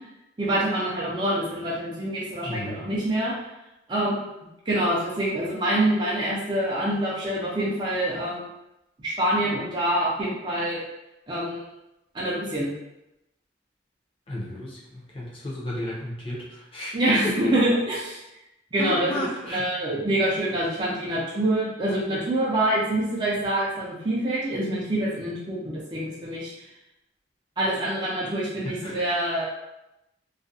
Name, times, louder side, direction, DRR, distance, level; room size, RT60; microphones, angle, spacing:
voice 1, 0.4-3.3 3.9-4.3 4.7-8.5 9.0-10.8 11.3-11.7 12.1-12.7 16.9-18.2 18.7-26.5 27.6-29.4, right 1 dB, 25° right, -7 dB, 0.5 m, -26 dB
voice 2, 2.4-2.8 14.3-17.0 17.2-17.5 18.8-19.6 28.8-28.9, left 1 dB, 30° left, -5 dB, 0.6 m, -33 dB
2.4 x 2.2 x 2.5 m, 0.91 s
head